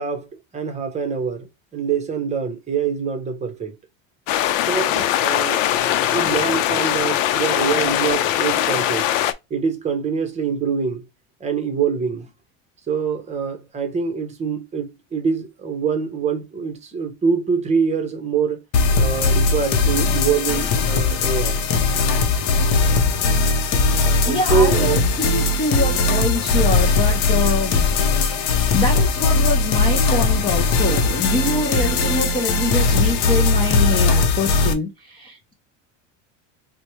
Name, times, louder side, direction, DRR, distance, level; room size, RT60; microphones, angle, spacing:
voice 1, 0.0-3.8 4.6-5.6 6.1-9.1 9.5-11.0 11.4-12.3 12.9-18.6 19.0-21.6 24.2-25.0, right 6 dB, 20° right, 0.7 m, -24 dB
sound 1, 4.3-9.3, left 12 dB, 90° left, 0.6 m, -21 dB
sound 2, 18.7-34.7, left 3 dB, 55° left, 0.8 m, -19 dB
voice 2, 24.2-35.5, left 3 dB, 15° left, 0.4 m, -25 dB
4.4 x 2.1 x 3.0 m
cardioid pair, 150°, 38 cm